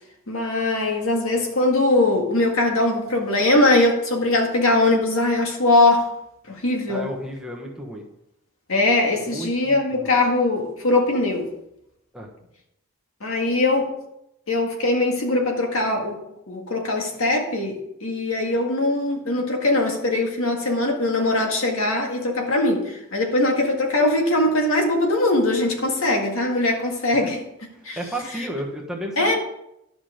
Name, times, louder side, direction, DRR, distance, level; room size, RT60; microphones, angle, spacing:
voice 1, 0.3-6.1 6.5-7.1 8.7-11.5 13.2-14.0 14.5-16.2 16.5-27.4 27.8-28.0 29.2-29.3, left 2 dB, 75° left, 2 dB, 1.9 m, -21 dB
voice 2, 6.9-8.0 9.2-10.1 12.1-12.3 28.0-29.3, right 1 dB, 5° right, -1 dB, 1.2 m, -32 dB
11.0 x 6.0 x 5.0 m, 0.82 s
head